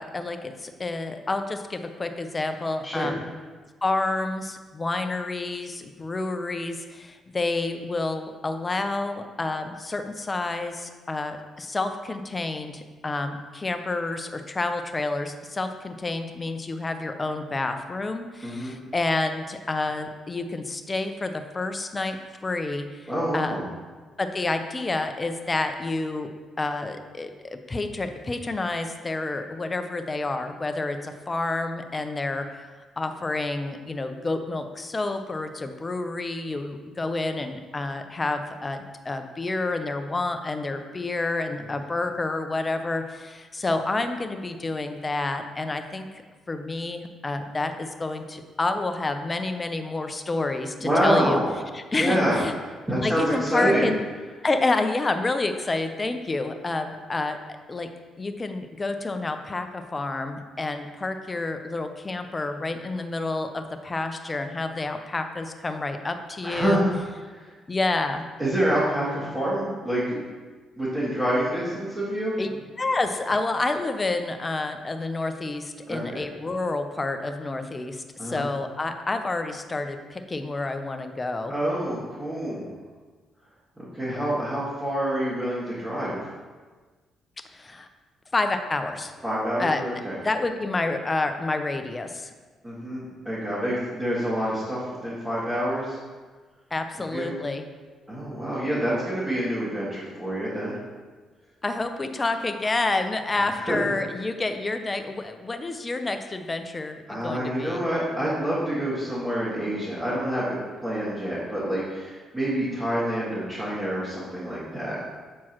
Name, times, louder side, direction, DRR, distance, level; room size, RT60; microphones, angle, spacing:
voice 1, 0.0-3.3 3.8-23.6 24.2-26.3 26.6-32.7 33.0-46.1 46.5-51.4 51.7-52.5 53.0-54.0 54.4-57.9 58.2-66.8 67.7-68.2 72.4-72.5 72.8-81.5 87.5-87.9 88.3-89.1 89.6-89.8 90.2-92.3 96.7-97.7 101.6-107.8, left 2 dB, 25° left, 7 dB, 0.5 m, -29 dB
voice 2, 18.4-18.7 23.1-23.6 50.8-51.5 52.0-52.4 52.9-53.9 66.4-66.9 67.3-67.5 68.4-70.2 70.8-72.4 75.9-76.2 78.2-78.4 81.5-82.7 83.8-86.2 89.2-90.2 92.6-96.0 97.1-97.4 98.1-100.8 103.7-103.8 107.1-115.0, right 1 dB, 15° right, -11 dB, 1.8 m, -27 dB
7.2 x 4.5 x 3.0 m, 1.4 s
cardioid pair, 90°, 0 cm